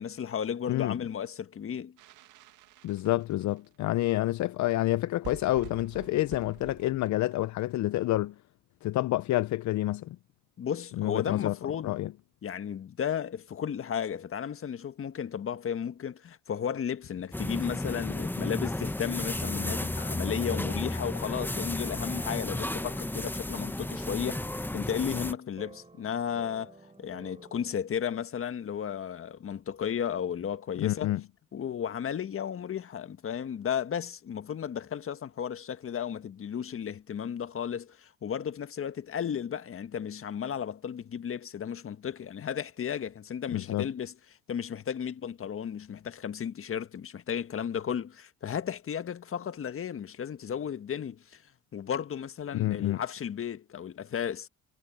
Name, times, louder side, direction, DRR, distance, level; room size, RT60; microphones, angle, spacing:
voice 1, 0.0-2.0 10.6-11.9 12.4-24.4 24.7-31.2 31.5-44.1 44.5-51.4 51.7-54.5, left 8 dB, 40° left, 1.6 m, -34 dB
sound 1, 2.0-3.8 4.5-4.6 4.8-4.9 5.1-8.2, right 14 dB, 70° right, 2.2 m, -48 dB
voice 2, 2.8-8.4 8.8-10.2 11.0-11.5 11.8-12.1 30.8-31.2 43.5-43.9 52.5-53.0, left 16 dB, 60° left, 0.8 m, -28 dB
sound 2, 17.3-25.3, left 1 dB, 5° left, 1.1 m, -33 dB
sound 3, 19.2-27.8, right 3 dB, 20° right, 7.5 m, -52 dB
supercardioid pair, 75°, 32 cm